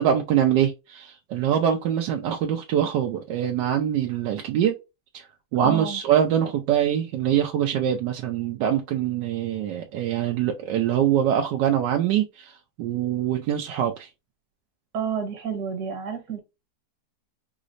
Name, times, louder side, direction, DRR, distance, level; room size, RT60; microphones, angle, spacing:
voice 1, 0.0-4.8 5.1-5.2 5.5-14.1, right 10 dB, 80° right, 1.2 m, -24 dB
voice 2, 5.6-6.0 14.9-16.4, right 7 dB, 65° right, 1.7 m, -30 dB
4.8 x 2.0 x 2.5 m
omnidirectional pair, 1.9 m